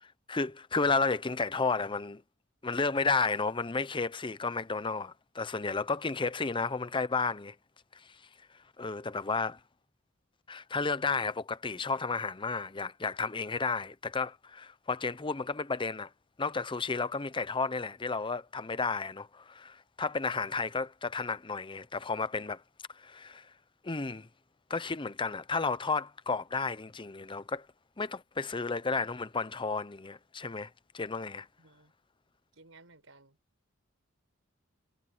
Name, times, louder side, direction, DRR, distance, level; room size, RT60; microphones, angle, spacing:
voice 1, 0.0-2.2 2.6-7.5 7.9-8.1 8.8-9.6 10.5-16.1 16.4-22.6 22.9-23.5 23.8-24.3 24.7-27.7 28.0-31.5, left 4 dB, 25° left, 0.7 m, -32 dB
voice 2, 31.6-31.9 32.5-33.4, right 3 dB, 70° right, 6.7 m, -57 dB
head